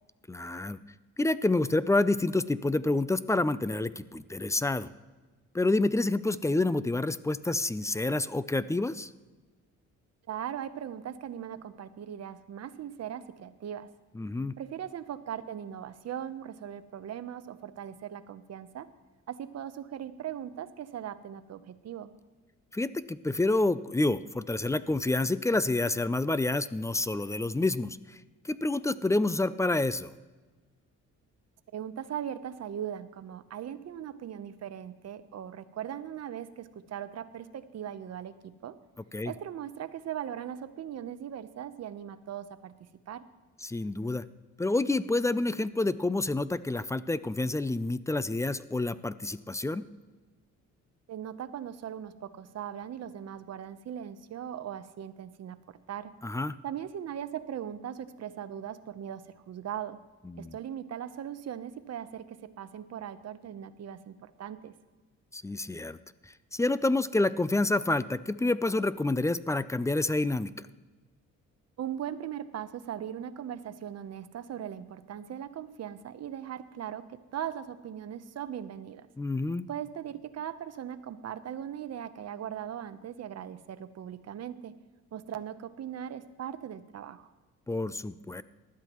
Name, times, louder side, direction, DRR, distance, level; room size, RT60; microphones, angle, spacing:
voice 1, 0.3-0.8 1.2-4.9 5.5-9.1 14.2-14.5 22.7-28.2 28.4-30.1 39.1-39.3 43.6-44.2 44.6-49.8 56.2-56.6 60.3-60.6 65.3-66.0 66.2-70.7 79.2-79.7 87.7-88.4, left 2 dB, 10° left, 16 dB, 0.4 m, -28 dB
voice 2, 10.3-13.9 14.6-18.9 19.3-22.1 31.7-38.8 39.2-43.2 51.1-56.1 56.6-60.0 60.4-64.7 71.8-79.1 79.7-84.7 85.1-87.3, right 9 dB, 55° right, 12 dB, 0.9 m, -39 dB
19.0 x 12.5 x 3.1 m, 1.3 s
cardioid pair, 90°, 30 cm